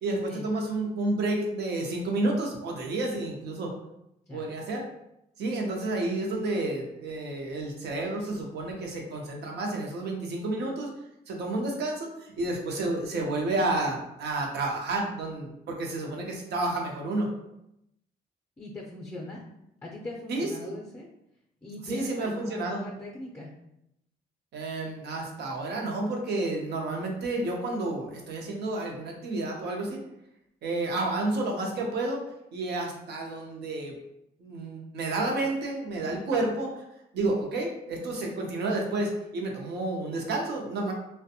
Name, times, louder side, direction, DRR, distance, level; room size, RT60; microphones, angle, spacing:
voice 1, 0.0-3.7 4.3-4.9 5.4-10.9 11.3-17.3 20.3-20.8 21.9-22.8 24.5-30.0 30.6-32.2 32.5-33.9 34.4-36.8 37.1-40.9, right 2 dB, 75° right, 0 dB, 0.7 m, -30 dB
voice 2, 18.6-19.4 19.8-21.1 21.6-23.5 36.0-36.5, left 2 dB, 15° left, -2 dB, 0.5 m, -41 dB
2.5 x 2.2 x 2.7 m, 0.82 s
cardioid pair, 90°, 17 cm